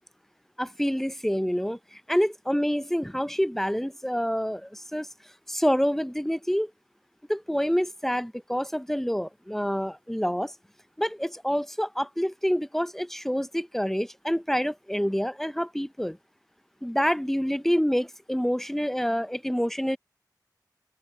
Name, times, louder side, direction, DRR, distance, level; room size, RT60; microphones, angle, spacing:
voice 1, 0.6-5.1 5.5-6.7 7.3-10.5 11.0-16.2 16.8-20.0, equal, 5° left, 0.7 m, -27 dB
open air
cardioid pair, 45°, 7 cm